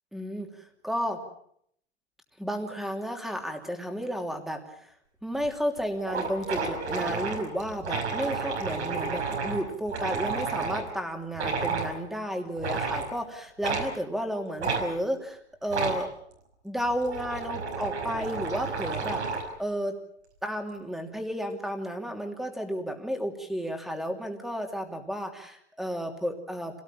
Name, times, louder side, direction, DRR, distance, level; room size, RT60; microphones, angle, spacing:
voice 1, 0.1-0.5 0.8-1.2 2.4-4.6 5.2-16.1 16.6-19.2 19.6-20.0 20.4-26.8, equal, ahead, 4 dB, 3.0 m, -32 dB
sound 1, 5.4-5.5 5.8-5.9 6.1-10.9 11.3-11.9 12.6-13.1 13.6-13.9 14.6-14.8 15.7-16.0 16.8-19.5, right 4 dB, 85° right, 5.7 m, -31 dB
26.0 x 18.0 x 7.5 m, 0.70 s
hypercardioid pair, 115°, 33 cm